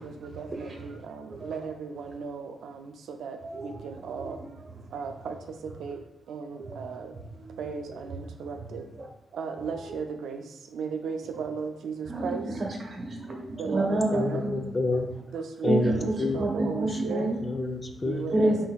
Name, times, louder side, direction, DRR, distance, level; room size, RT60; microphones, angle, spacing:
voice 1, 0.0-4.6 4.9-7.1 7.6-8.8 9.3-12.5 13.6-14.4 15.3-17.3 18.0-18.7, right 5 dB, 85° right, 5 dB, 0.3 m, -36 dB
voice 2, 0.7-1.0 1.3-1.5 3.4-3.7 4.0-4.5 6.6-7.6 9.0-9.1 9.6-9.8 12.1-14.6 15.7-17.4 18.3-18.7, right 2 dB, 40° right, 1 dB, 0.9 m, -29 dB
voice 3, 14.1-15.1 15.6-18.2, left 3 dB, 30° left, 3 dB, 0.5 m, -30 dB
4.0 x 3.9 x 2.3 m, 0.90 s
cardioid pair, 115°, 0 cm